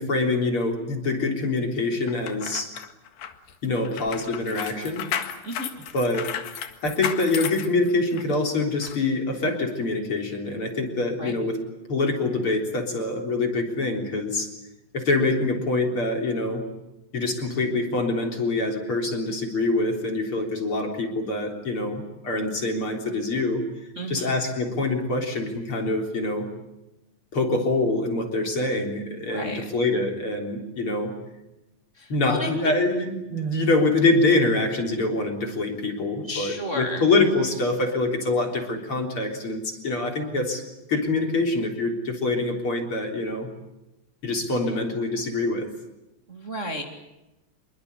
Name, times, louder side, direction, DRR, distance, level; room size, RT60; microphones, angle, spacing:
voice 1, 0.0-2.7 3.6-5.1 5.7-6.3 6.8-11.6 11.9-14.5 14.9-16.6 17.1-23.6 24.1-26.5 27.3-31.1 32.1-43.5 44.2-45.7, left 2 dB, 35° left, 3 dB, 4.4 m, -25 dB
sound 1, 2.1-8.4 8.8-9.0, left 9 dB, 85° left, 3.5 m, -34 dB
voice 2, 24.0-24.3 29.3-29.6 32.0-32.7 36.3-37.1 46.3-46.8, equal, 25° right, 2 dB, 2.2 m, -32 dB
27.0 x 23.5 x 8.3 m, 0.97 s
omnidirectional pair, 4.1 m